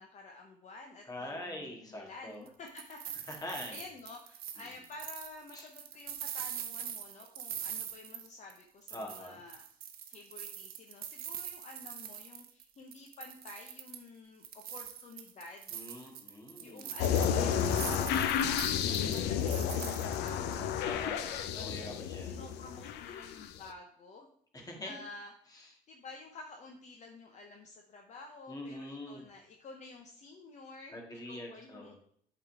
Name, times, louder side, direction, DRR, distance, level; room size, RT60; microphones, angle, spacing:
voice 1, 0.0-3.4 3.7-9.6 10.1-15.7 16.6-21.7 22.3-24.3 24.8-31.9, left 3 dB, 45° left, 2 dB, 0.9 m, -51 dB
voice 2, 1.1-2.4 3.3-3.8 4.6-4.7 5.5-5.7 8.9-9.4 15.7-17.0 20.8-22.4 24.5-25.0 25.5-25.7 28.5-29.3 30.9-31.9, left 1 dB, 20° left, 1 dB, 2.1 m, -44 dB
sound 1, 2.5-8.6 8.9-12.6 12.9-14.1 14.4-20.5, right 9 dB, 60° right, 0.9 m, -43 dB
sound 2, 17.0-23.6, left 8 dB, 80° left, 0.6 m, -31 dB
8.2 x 3.9 x 4.9 m, 0.65 s
cardioid pair, 110°, 17 cm